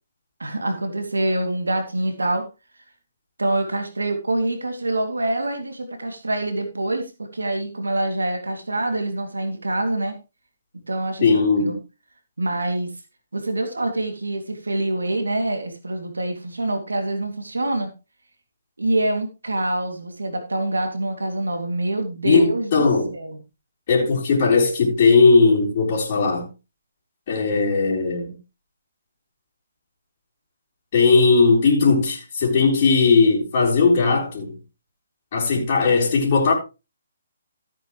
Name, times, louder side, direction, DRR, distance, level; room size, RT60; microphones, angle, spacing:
voice 1, 0.4-2.5 3.4-10.2 10.9-11.8 12.4-12.9 13.3-17.9 18.8-22.8 23.1-23.4, right 1 dB, 85° right, 2.5 m, -25 dB
voice 2, 11.2-11.8 22.2-23.1 23.9-26.5 27.3-28.4 30.9-34.6 35.3-36.5, left 4 dB, 45° left, 3.7 m, -18 dB
14.5 x 8.6 x 3.1 m
figure-of-eight pair, 140°, 0 cm